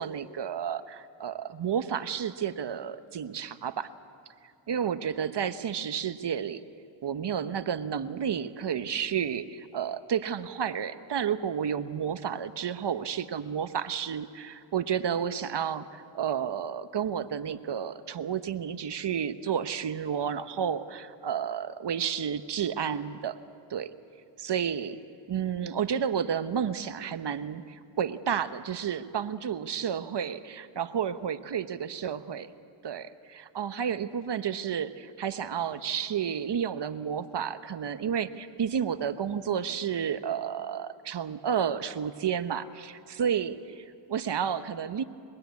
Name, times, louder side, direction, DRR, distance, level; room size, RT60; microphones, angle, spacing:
voice 1, 0.0-3.9 4.7-6.6 7.0-23.4 23.7-23.9 24.4-25.0 25.3-32.5 32.8-45.0, right 8 dB, 55° right, 12 dB, 1.1 m, -31 dB
22.5 x 22.0 x 8.4 m, 2.5 s
cardioid pair, 65°, 48 cm